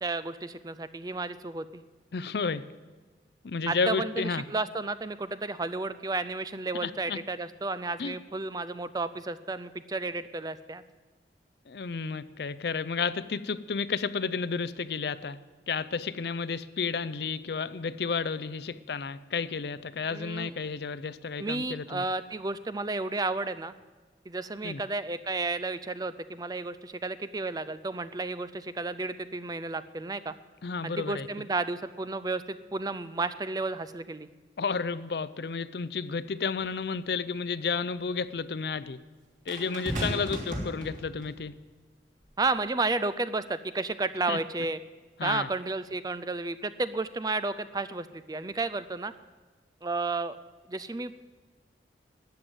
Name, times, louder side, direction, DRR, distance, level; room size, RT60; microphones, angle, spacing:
voice 1, 0.0-1.8 3.7-10.8 20.1-20.5 21.4-23.7 24.3-30.3 30.8-34.3 39.9-40.4 42.4-44.8 45.2-49.1 49.8-50.4 50.7-51.2, right 3 dB, 20° right, 14 dB, 0.4 m, -32 dB
voice 2, 2.1-2.6 3.4-4.4 6.8-7.2 8.0-8.1 11.7-15.4 15.7-22.0 24.6-24.8 30.6-31.3 34.6-39.0 39.5-41.5 44.3-44.4 45.2-45.5, left 5 dB, 65° left, 15 dB, 0.5 m, -32 dB
sound 1, 36.6-36.7 39.5-41.4 42.3-42.5, equal, 45° right, 3.2 m, -35 dB
13.5 x 9.4 x 7.9 m, 1.4 s
head